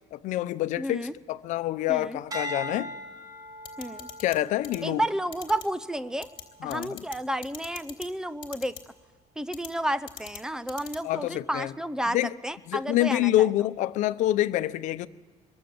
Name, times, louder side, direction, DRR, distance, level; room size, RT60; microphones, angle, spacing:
voice 1, 0.1-2.9 4.2-5.0 6.6-7.0 11.0-11.7 12.1-12.3 12.7-15.1, left 14 dB, 80° left, 0.8 m, -26 dB
voice 2, 0.8-1.1 1.9-2.2 3.8-4.1 4.8-6.3 6.6-8.7 9.4-12.2 12.4-13.5, right 1 dB, 5° right, 0.7 m, -31 dB
sound 1, 2.3-6.8 7.3-7.7, equal, 30° right, 3.3 m, -40 dB
sound 2, 3.6-4.4 4.6-4.8 5.3-5.6 6.2-6.4 6.7-7.2 7.4-8.1 8.4-8.8 9.5-9.7 10.1-10.4 10.7-11.0, left 8 dB, 40° left, 3.3 m, -40 dB
25.0 x 22.5 x 7.9 m
cardioid pair, 135°, 12 cm